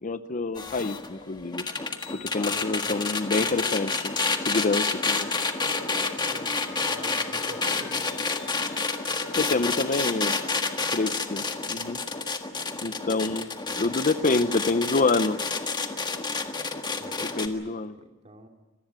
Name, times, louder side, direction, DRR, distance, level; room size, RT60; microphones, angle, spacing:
voice 1, 0.0-1.6 2.1-4.2 4.4-5.3 9.3-10.3 10.9-12.0 12.8-13.5 13.8-15.4 17.4-17.9, left 3 dB, 40° left, 13 dB, 0.7 m, -27 dB
sound 1, 0.6-17.5, left 4 dB, 20° left, 1.6 m, -29 dB
sound 2, 2.0-11.1, left 8 dB, 65° left, 1.8 m, -49 dB
voice 2, 2.1-3.0 6.2-8.3 13.1-14.0 17.0-18.5, right 1 dB, 30° right, 3 dB, 2.8 m, -48 dB
25.5 x 19.0 x 8.9 m, 1.1 s
head